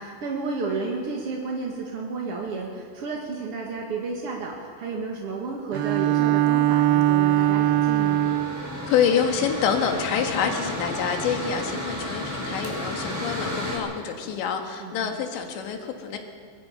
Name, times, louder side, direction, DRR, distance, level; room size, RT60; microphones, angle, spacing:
voice 1, 0.0-8.2 14.8-15.2, right 4 dB, 55° right, -1 dB, 1.6 m, -32 dB
Bowed string instrument, 5.7-8.8, right 14 dB, 85° right, 2.2 m, -21 dB
Mechanical fan, 6.7-13.8, left 1 dB, 5° right, 4.6 m, -33 dB
voice 2, 8.8-16.2, left 7 dB, 75° left, 4 dB, 3.9 m, -26 dB
22.5 x 21.5 x 5.7 m, 2.2 s
omnidirectional pair, 5.3 m